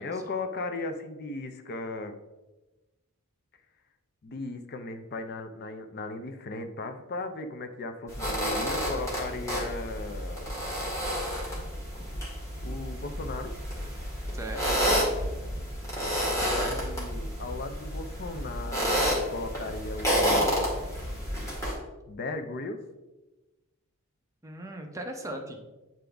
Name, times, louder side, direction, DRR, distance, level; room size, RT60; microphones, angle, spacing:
voice 1, 0.0-2.2 4.2-10.5 12.6-13.5 16.3-20.8 22.1-22.8, left 2 dB, 45° left, 8 dB, 0.5 m, -37 dB
sound 1, 8.1-21.7, equal, 15° left, 1.9 m, -30 dB
voice 2, 14.3-14.8 16.4-16.9 24.4-25.6, right 1 dB, 15° right, 3 dB, 0.6 m, -38 dB
8.8 x 3.8 x 3.4 m, 1.1 s
head